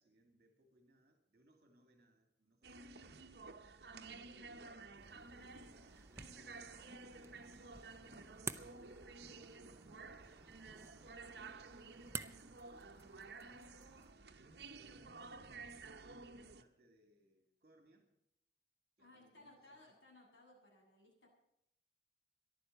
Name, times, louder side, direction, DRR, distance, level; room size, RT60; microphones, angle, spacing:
voice 1, 0.0-3.3 3.9-5.8 6.3-13.7 14.4-16.0 16.3-18.1 19.0-19.9, right 1 dB, 40° right, 5 dB, 2.3 m, -70 dB
sound 1, 2.6-16.6, right 3 dB, 60° right, 0.9 m, -53 dB
voice 2, 3.9-4.2 19.0-21.3, left 1 dB, 85° left, -3 dB, 7.7 m, -62 dB
sound 2, 4.9-14.1, right 4 dB, 15° right, 0.6 m, -52 dB
14.5 x 11.5 x 7.8 m, 0.77 s
head